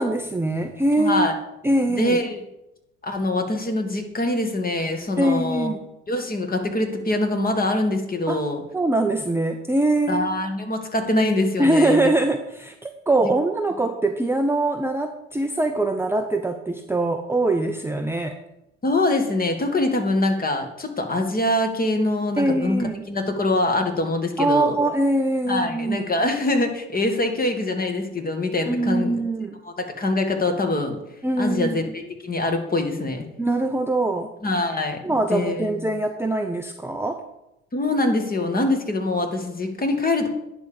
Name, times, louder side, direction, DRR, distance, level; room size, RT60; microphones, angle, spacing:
voice 1, 0.0-1.3 1.6-2.2 5.2-5.9 8.3-8.4 8.7-10.3 11.6-18.4 22.4-23.1 24.4-26.1 28.7-29.6 31.2-31.8 33.4-34.3 35.0-37.2, right 2 dB, 5° right, 4 dB, 0.7 m, -23 dB
voice 2, 1.0-1.3 1.9-2.4 3.0-5.7 6.1-8.6 10.1-12.1 13.2-13.3 18.8-22.8 23.1-24.8 25.5-29.2 29.8-31.0 31.4-33.3 34.4-35.8 37.7-40.3, left 2 dB, 25° left, 4 dB, 1.9 m, -24 dB
10.5 x 3.7 x 6.9 m, 0.86 s
hypercardioid pair, 65°, 32 cm